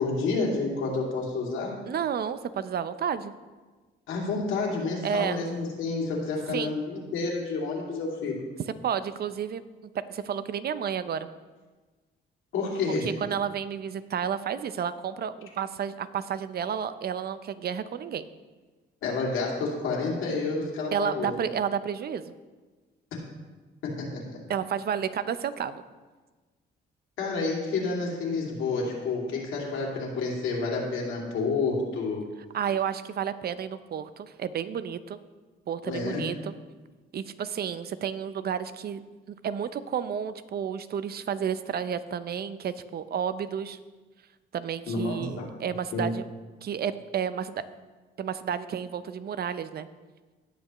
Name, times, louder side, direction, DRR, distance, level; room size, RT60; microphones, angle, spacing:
voice 1, 0.0-1.8 4.1-8.4 12.5-13.1 19.0-21.3 23.8-24.4 27.2-32.2 35.9-36.3 44.9-45.5 45.9-46.1, left 3 dB, 85° left, -3 dB, 2.6 m, -29 dB
voice 2, 1.8-3.3 5.0-5.4 6.5-6.7 8.8-9.6 10.1-11.3 13.0-18.3 20.9-22.3 24.5-25.8 32.5-35.2 35.7-36.5 37.1-39.0 39.4-43.8 44.5-46.2 46.6-47.6 48.2-49.9, right 8 dB, 50° right, 13 dB, 0.6 m, -31 dB
17.0 x 6.6 x 3.1 m, 1.3 s
cardioid pair, 90°, 20 cm